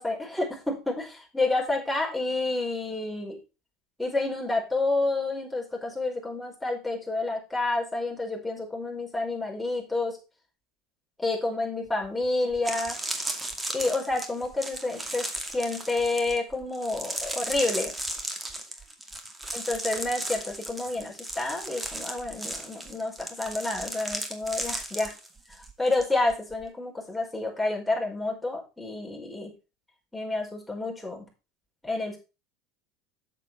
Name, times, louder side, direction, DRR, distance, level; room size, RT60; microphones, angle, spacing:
voice 1, 0.0-3.4 4.0-10.2 11.2-13.0 13.7-15.3 15.5-17.9 19.5-25.1 25.5-29.5 30.1-31.2 31.8-32.2, left 2 dB, 5° left, -2 dB, 5.1 m, -29 dB
sound 1, 12.0-12.1 12.5-26.0 26.3-26.6, right 1 dB, 15° right, 2.2 m, -35 dB
7.5 x 7.3 x 4.9 m, 0.29 s
hypercardioid pair, 75°, 0 cm